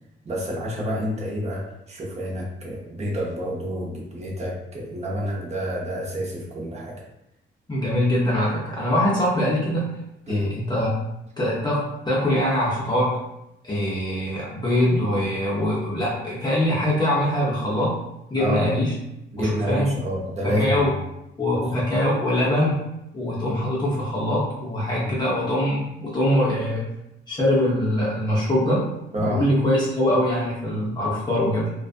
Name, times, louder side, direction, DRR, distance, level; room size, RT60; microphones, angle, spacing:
voice 1, 0.2-7.0 10.3-10.5 18.4-18.7 19.3-20.9 21.5-21.7 25.0-25.1 29.1-29.4, equal, 35° right, -3 dB, 0.8 m, -28 dB
voice 2, 7.7-9.9 10.3-10.9 11.4-13.2 13.6-18.0 18.3-18.9 19.4-19.9 20.4-20.9 21.4-22.8 23.1-26.8 27.3-28.9 29.2-31.7, left 1 dB, 20° left, -6 dB, 0.7 m, -23 dB
2.4 x 2.3 x 2.5 m, 0.85 s
cardioid pair, 90°, 20 cm